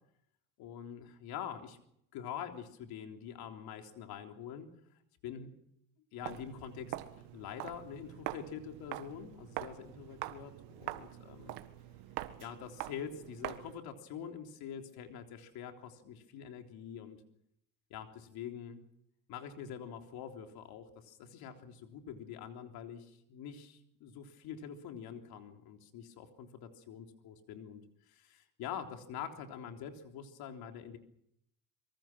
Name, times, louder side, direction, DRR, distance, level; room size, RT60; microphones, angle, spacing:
voice 1, 0.6-1.8 2.1-4.7 5.2-5.5 6.1-7.0 7.3-11.6 12.4-17.2 17.9-18.8 19.3-31.0, left 8 dB, 75° left, 4 dB, 3.6 m, -45 dB
Walk footsteps, 6.2-13.8, right 15 dB, 85° right, 1.7 m, -44 dB
26.0 x 24.0 x 6.1 m, 0.75 s
cardioid pair, 130°, 38 cm